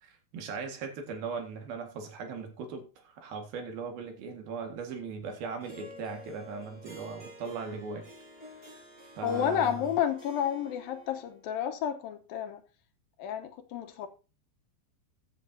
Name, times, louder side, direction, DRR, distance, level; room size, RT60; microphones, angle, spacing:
voice 1, 0.0-8.1 9.2-9.8, right 5 dB, 75° right, 3.7 m, -39 dB
Harp, 5.6-11.4, equal, 20° right, 5.1 m, -49 dB
voice 2, 9.2-12.6 13.2-14.1, left 9 dB, 75° left, 2.7 m, -31 dB
15.0 x 10.5 x 2.8 m
omnidirectional pair, 4.3 m